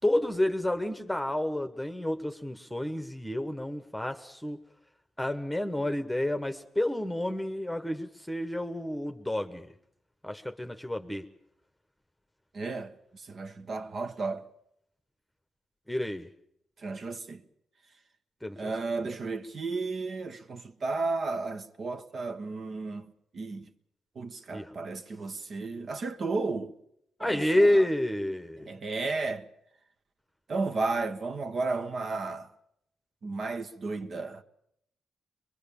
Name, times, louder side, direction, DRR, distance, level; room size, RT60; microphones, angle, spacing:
voice 1, 0.0-4.6 5.2-9.7 10.2-11.3 15.9-16.3 18.4-18.7 24.5-24.7 27.2-28.7, left 1 dB, 5° left, 1.2 m, -29 dB
voice 2, 12.5-14.5 16.8-17.4 18.6-23.1 23.3-23.7 24.1-26.7 27.2-27.9 28.6-29.5 30.5-32.5 33.2-34.4, right 3 dB, 55° right, 1.3 m, -33 dB
23.5 x 22.0 x 7.1 m
cardioid pair, 85°, 0 cm